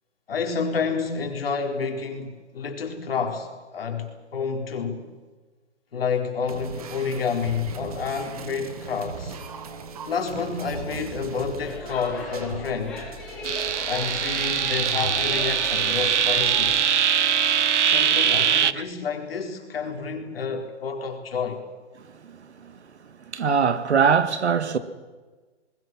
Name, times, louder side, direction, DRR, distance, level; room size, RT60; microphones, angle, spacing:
voice 1, 0.3-5.1 5.9-9.4 10.1-13.1 13.9-16.8 17.8-21.6, left 5 dB, 55° left, 4.3 m, -29 dB
sound 1, 6.5-16.5, right 5 dB, 30° right, 1.8 m, -39 dB
Speech / Shout / Subway metro underground, 11.6-16.8, left 1 dB, ahead, 6.5 m, -37 dB
sound 2, 13.4-18.7, right 8 dB, 90° right, 1.0 m, -22 dB
voice 2, 23.3-24.8, right 6 dB, 70° right, 2.0 m, -21 dB
29.5 x 21.0 x 6.2 m
hypercardioid pair, 175°, 35 cm